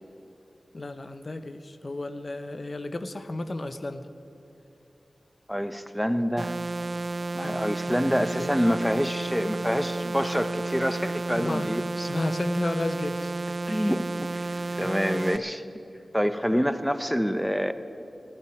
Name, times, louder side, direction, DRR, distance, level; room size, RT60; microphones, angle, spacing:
voice 1, 0.7-4.1 7.4-8.5 11.4-13.3 14.5-15.2 16.5-16.7, left 2 dB, 50° left, 10 dB, 0.8 m, -34 dB
voice 2, 5.5-6.5 7.3-12.1 13.7-14.5 14.8-15.6 16.1-17.7, equal, ahead, 11 dB, 0.7 m, -27 dB
sound 1, 6.4-15.4, right 3 dB, 55° right, 0.3 m, -32 dB
15.5 x 9.0 x 9.1 m, 2.9 s
cardioid pair, 45°, 0 cm